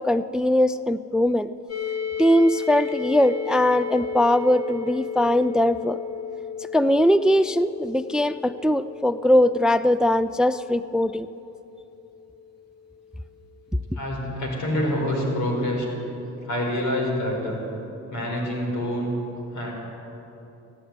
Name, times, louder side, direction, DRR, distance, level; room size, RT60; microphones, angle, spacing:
voice 1, 0.0-1.5 2.2-6.0 6.7-11.3, left 1 dB, 5° right, 14 dB, 0.3 m, -21 dB
sound 1, 1.7-13.4, left 7 dB, 55° left, 1.2 m, -34 dB
voice 2, 13.9-15.9 16.5-17.6 18.1-19.1 19.5-19.7, left 1 dB, 90° left, -1 dB, 4.7 m, -26 dB
15.5 x 9.9 x 9.4 m, 3.0 s
cardioid pair, 90°, 30 cm